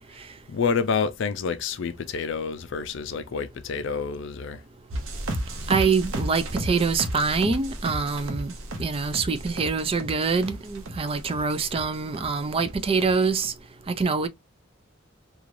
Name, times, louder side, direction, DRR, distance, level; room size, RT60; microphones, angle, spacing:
voice 1, 0.5-4.6, left 5 dB, 65° left, 0.4 m, -28 dB
sound 1, 4.9-11.8 12.1-12.7 13.0-13.5, right 1 dB, 75° right, 0.8 m, -33 dB
voice 2, 5.7-8.5 8.8-13.5 13.9-14.3, right 4 dB, 30° right, 0.4 m, -25 dB
3.1 x 2.3 x 2.5 m
head